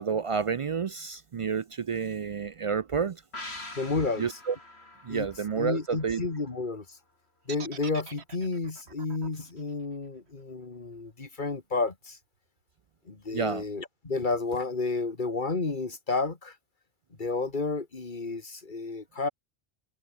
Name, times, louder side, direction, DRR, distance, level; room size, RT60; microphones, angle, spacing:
voice 1, 0.0-3.2 4.2-4.6 5.0-6.2 13.3-13.7, right 6 dB, 55° right, 0.3 m, -30 dB
sound 1, 3.3-6.8 7.1-7.2, left 2 dB, 80° left, 5.4 m, -45 dB
voice 2, 3.8-4.3 5.1-5.3 5.6-7.0 7.5-12.2 13.1-16.6 17.2-19.3, left 3 dB, 50° left, 2.2 m, -31 dB
sound 2, 7.5-11.5, right 6 dB, 90° right, 1.6 m, -46 dB
omnidirectional pair, 1.1 m